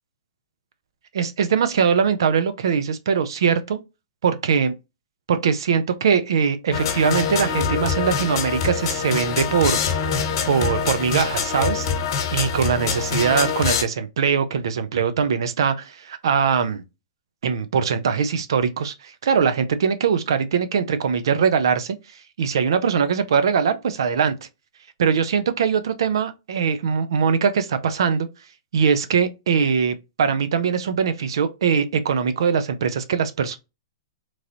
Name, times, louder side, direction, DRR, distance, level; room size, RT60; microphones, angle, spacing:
voice 1, 1.1-3.8 4.2-4.7 5.3-9.8 10.4-11.9 12.3-16.8 17.4-22.0 22.4-24.4 25.0-28.3 28.7-33.6, right 6 dB, 70° right, 0.6 m, -21 dB
sound 1, 6.7-13.8, left 6 dB, 55° left, 1.1 m, -24 dB
3.1 x 2.6 x 2.8 m
hypercardioid pair, 125°, 3 cm